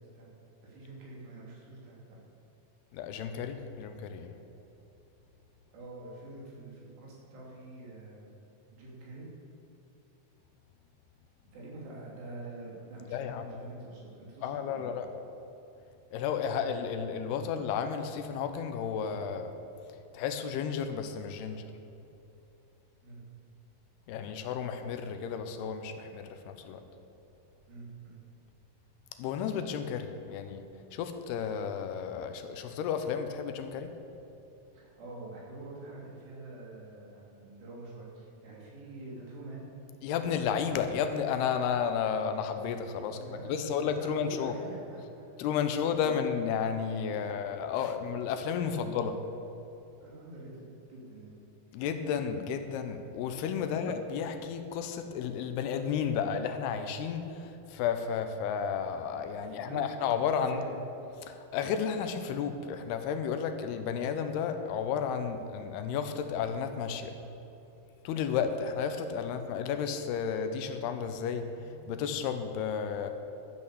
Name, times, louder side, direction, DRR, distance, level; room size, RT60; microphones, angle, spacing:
voice 1, 0.6-2.2 5.7-8.3 8.7-9.3 11.5-13.3 13.6-14.9 23.0-23.2 27.7-28.2 34.7-39.7 43.1-45.2 45.6-46.1 48.6-49.0 50.0-51.3 53.6-53.8 59.4-59.9 60.4-60.7, right 2 dB, 85° right, -5 dB, 5.0 m, -46 dB
voice 2, 2.9-4.3 13.1-13.6 14.4-15.1 16.1-19.5 20.1-21.7 24.1-26.8 29.2-30.6 30.9-33.9 40.0-44.5 45.4-49.2 51.7-60.6 61.2-67.1 68.0-73.1, left 7 dB, 80° left, 8 dB, 2.7 m, -32 dB
12.5 x 8.7 x 7.0 m, 2.9 s
omnidirectional pair, 4.7 m